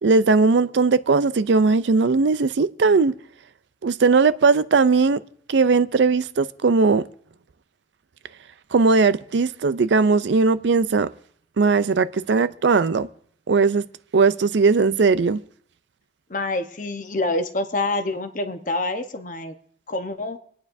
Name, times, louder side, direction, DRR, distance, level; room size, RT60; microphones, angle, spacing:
voice 1, 0.0-3.1 3.8-5.2 5.5-7.0 8.7-11.1 11.6-13.1 13.5-13.8 14.1-15.4, right 4 dB, 80° right, 0.5 m, -18 dB
voice 2, 16.3-19.5 19.9-20.4, left 2 dB, 45° left, 0.9 m, -26 dB
26.5 x 9.4 x 2.7 m
head